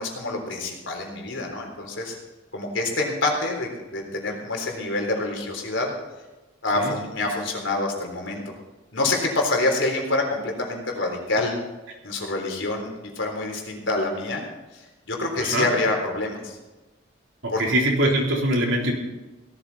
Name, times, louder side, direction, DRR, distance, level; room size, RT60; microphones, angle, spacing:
voice 1, 0.0-2.2 2.5-5.9 6.6-8.4 8.9-11.5 12.0-14.4 14.7-16.6 17.5-17.6, left 2 dB, 75° left, 1 dB, 3.7 m, -26 dB
voice 2, 15.4-15.7 17.4-18.9, right 1 dB, 80° right, -1 dB, 3.7 m, -23 dB
17.5 x 13.5 x 4.2 m, 1.1 s
head